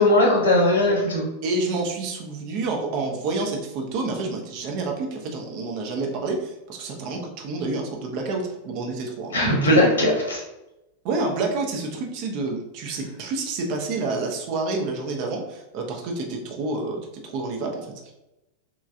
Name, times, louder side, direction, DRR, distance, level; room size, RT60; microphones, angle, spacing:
voice 1, 0.0-1.2 9.3-10.4, left 1 dB, 70° left, -2 dB, 0.9 m, -18 dB
voice 2, 1.4-9.4 9.7-9.9 11.0-18.1, right 3 dB, 45° right, 1 dB, 0.5 m, -29 dB
3.1 x 2.3 x 2.5 m, 0.93 s
figure-of-eight pair, 90°, 0 cm